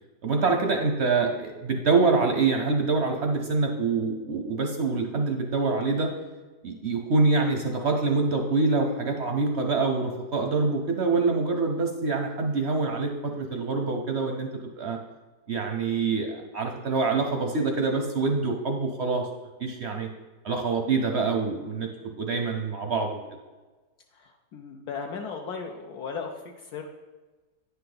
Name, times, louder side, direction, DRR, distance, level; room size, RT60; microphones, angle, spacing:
voice 1, 0.2-6.1 6.6-14.5 14.8-15.0 15.5-19.3 19.6-20.1 20.4-21.9 22.2-23.2, right 4 dB, 60° right, 3 dB, 0.7 m, -25 dB
voice 2, 24.1-26.8, left 5 dB, 70° left, 2 dB, 1.1 m, -36 dB
9.7 x 5.6 x 3.9 m, 1.2 s
omnidirectional pair, 1.8 m